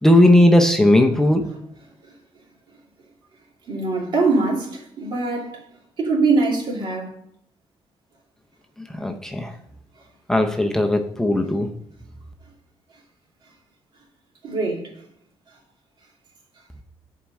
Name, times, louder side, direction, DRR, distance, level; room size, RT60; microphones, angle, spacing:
voice 1, 0.0-1.5 8.9-9.5 10.3-11.7, left 1 dB, 5° left, 0.6 m, -17 dB
voice 2, 3.7-5.6 6.0-7.1 14.4-14.9, right 3 dB, 55° right, 2.6 m, -22 dB
7.1 x 4.7 x 6.2 m
cardioid pair, 145°, 9 cm